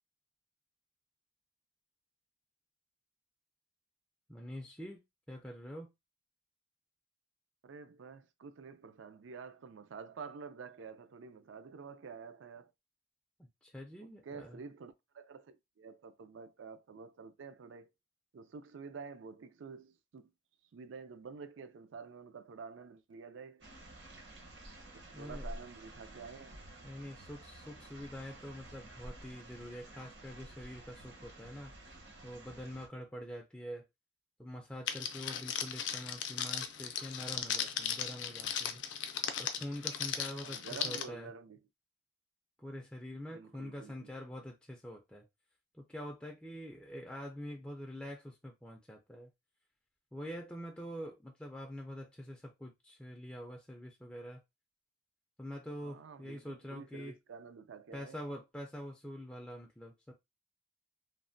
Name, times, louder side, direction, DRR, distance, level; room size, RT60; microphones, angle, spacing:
voice 1, 4.3-5.0 5.3-5.9 13.4-14.6 25.1-25.5 26.8-31.7 32.2-33.9 34.4-38.8 39.4-41.3 42.6-45.2 45.7-49.3 50.1-54.4 55.4-57.2 57.9-60.1, equal, 5° left, 0.3 m, -45 dB
voice 2, 7.6-12.7 14.0-17.9 18.3-20.2 20.7-23.7 25.1-26.6 40.4-41.6 43.3-44.1 55.8-58.2, right 5 dB, 80° right, 0.4 m, -49 dB
sound 1, 23.6-32.9, right 1 dB, 60° right, 0.8 m, -51 dB
Crackle, 34.9-41.0, left 8 dB, 70° left, 0.4 m, -37 dB
3.2 x 2.1 x 2.5 m
head